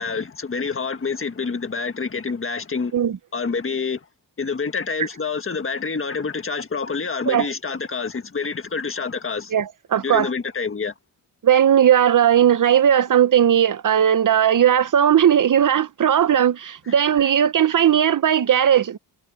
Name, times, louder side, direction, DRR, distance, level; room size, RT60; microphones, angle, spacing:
voice 1, 0.0-2.9 3.3-4.0 4.4-9.5 9.9-10.9, left 5 dB, 30° left, 1.7 m, -27 dB
voice 2, 9.5-10.3 11.4-19.0, right 9 dB, 45° right, 0.9 m, -17 dB
wide cardioid pair, 140°, 42 cm